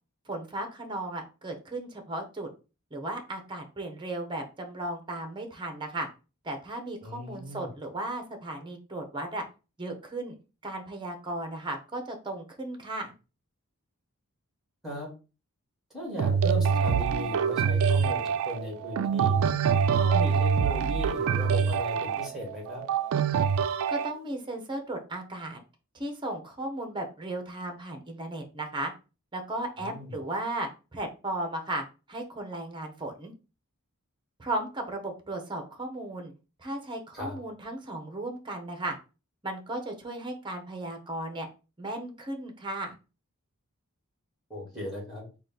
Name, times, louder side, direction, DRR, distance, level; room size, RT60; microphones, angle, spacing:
voice 1, 0.3-2.5 2.9-6.1 6.4-9.4 9.8-10.3 10.6-13.1 23.9-25.6 25.9-28.9 29.3-33.3 34.4-36.3 36.6-39.0 39.4-41.5 41.8-42.9, right 1 dB, 20° right, 5 dB, 0.8 m, -35 dB
voice 2, 7.0-7.7 14.8-15.1 15.9-19.4 20.0-22.8 29.8-30.2 37.1-37.3 44.5-45.3, left 1 dB, ahead, -2 dB, 2.1 m, -37 dB
sound 1, 16.2-24.1, right 6 dB, 65° right, 0.3 m, -25 dB
3.9 x 2.3 x 3.9 m, 0.31 s
head